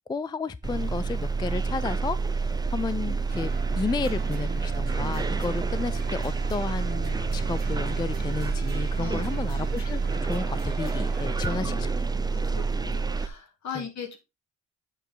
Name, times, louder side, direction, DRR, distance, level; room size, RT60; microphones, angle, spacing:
voice 1, 0.1-11.9 13.7-13.9, left 4 dB, 15° left, 0.3 m, -33 dB
sound 1, 0.6-13.3, right 4 dB, 15° right, 0.7 m, -28 dB
sound 2, 3.3-11.6, right 6 dB, 30° right, 1.9 m, -43 dB
Brass instrument, 3.8-8.0, left 3 dB, 85° left, 3.1 m, -53 dB
voice 2, 9.0-9.4 11.4-11.9 12.3-14.2, left 6 dB, 65° left, 2.6 m, -39 dB
9.0 x 4.8 x 3.8 m
cardioid pair, 90°, 30 cm